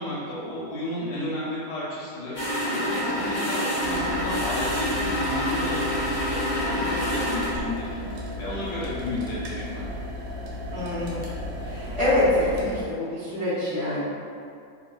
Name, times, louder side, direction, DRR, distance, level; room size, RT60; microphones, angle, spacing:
voice 1, 0.0-9.8, left 1 dB, 90° left, -7 dB, 1.7 m, -33 dB
sound 1, 2.3-7.5, equal, 40° left, 0.9 m, -27 dB
sound 2, 3.8-12.8, left 1 dB, 75° right, 0.9 m, -35 dB
voice 2, 10.7-11.2 11.6-14.0, left 1 dB, 65° left, -14 dB, 0.7 m, -25 dB
3.4 x 2.3 x 2.2 m, 2.3 s
omnidirectional pair, 2.3 m